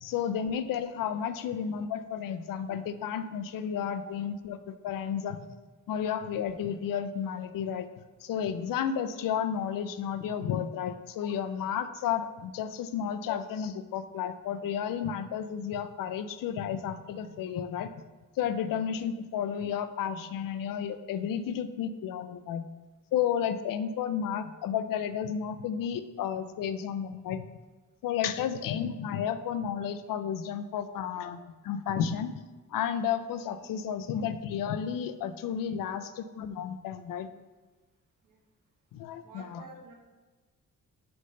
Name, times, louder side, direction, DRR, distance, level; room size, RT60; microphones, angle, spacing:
voice 1, 0.0-5.5 5.9-7.9 8.2-17.9 18.4-22.7 23.1-27.4 28.0-32.3 32.7-37.3 38.9-39.6, left 8 dB, 90° left, 11 dB, 0.5 m, -32 dB
voice 2, 39.2-39.9, right 3 dB, 70° right, -1 dB, 1.5 m, -49 dB
5.9 x 3.2 x 5.3 m, 1.3 s
cardioid pair, 110°, 32 cm